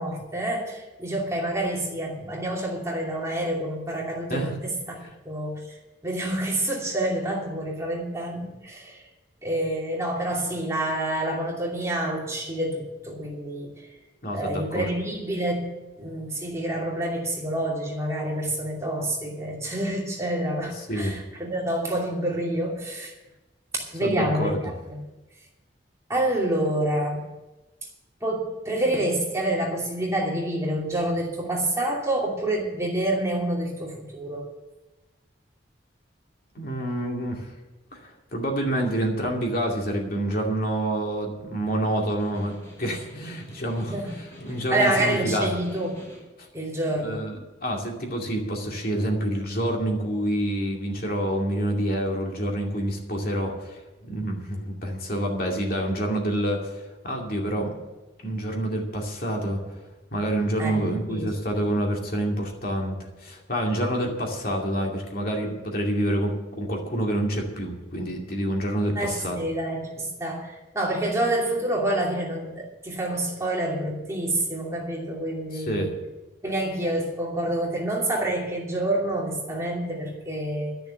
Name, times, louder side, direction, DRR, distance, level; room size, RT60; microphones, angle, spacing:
voice 1, 0.0-4.6 5.2-5.6 6.0-9.0 9.4-13.7 14.3-23.1 23.7-25.0 26.1-27.2 28.2-34.5 43.9-44.1 44.7-45.9 46.5-47.2 60.6-61.3 69.0-75.9 76.4-80.7, right 1 dB, 15° right, -3 dB, 2.7 m, -28 dB
voice 2, 14.2-14.9 20.9-21.1 24.0-24.6 36.5-37.5 37.9-42.5 42.8-45.5 46.4-46.5 47.0-56.7 57.0-57.7 58.2-59.6 60.1-69.4 75.5-75.9, right 1 dB, 50° left, 0 dB, 2.5 m, -27 dB
Snare drum, 41.9-46.4, left 1 dB, 15° left, 5.4 m, -48 dB
12.5 x 6.9 x 9.9 m, 1.1 s
head